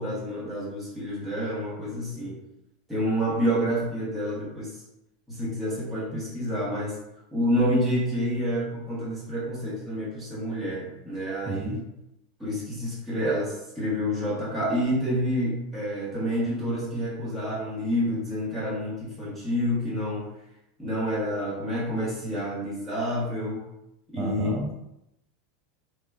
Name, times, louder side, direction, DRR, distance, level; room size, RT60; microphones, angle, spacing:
voice 1, 0.0-2.4 2.9-4.8 5.3-6.9 7.3-11.8 12.4-20.2 20.8-23.6 24.1-24.6, equal, 5° right, -9 dB, 1.0 m, -28 dB
voice 2, 11.5-11.8 24.2-24.9, right 2 dB, 25° right, 1 dB, 0.3 m, -31 dB
4.6 x 2.2 x 2.2 m, 0.85 s
supercardioid pair, 160°, 0 cm